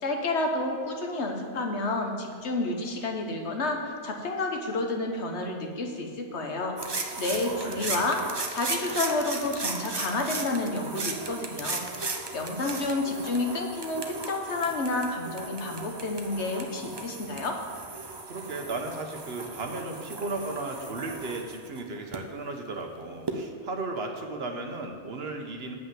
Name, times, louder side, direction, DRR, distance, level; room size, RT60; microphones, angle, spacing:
voice 1, 0.0-8.2 8.5-11.8 12.1-17.6, left 2 dB, 75° left, 3 dB, 1.4 m, -30 dB
sound 1, 6.8-22.2 23.3-23.4, right 3 dB, 30° right, 0.6 m, -36 dB
voice 2, 7.3-8.1 18.3-25.7, right 3 dB, 65° right, 4 dB, 1.2 m, -35 dB
8.0 x 5.7 x 7.4 m, 2.2 s
omnidirectional pair, 1.2 m